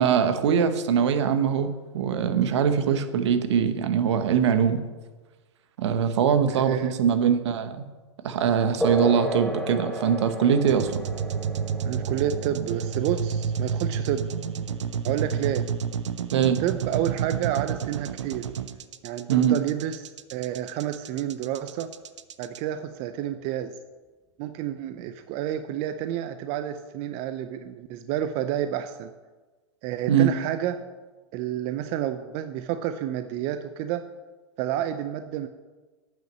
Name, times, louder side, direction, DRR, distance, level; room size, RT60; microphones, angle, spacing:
voice 1, 0.0-4.8 5.8-7.8 8.2-11.0 16.3-16.6 19.3-19.6 30.1-30.3, right 7 dB, 70° right, 9 dB, 1.1 m, -22 dB
voice 2, 6.5-6.9 11.8-14.2 15.0-15.6 16.6-18.5 19.0-21.9 22.4-23.8 24.4-29.1 29.8-30.8 31.3-34.1 34.6-35.5, right 11 dB, 45° right, 10 dB, 0.6 m, -30 dB
sound 1, 8.8-16.8, left 1 dB, ahead, 1.1 m, -34 dB
sound 2, 10.7-22.6, right 7 dB, 90° right, 0.6 m, -30 dB
8.7 x 6.1 x 7.4 m, 1.3 s
hypercardioid pair, 125°, 15 cm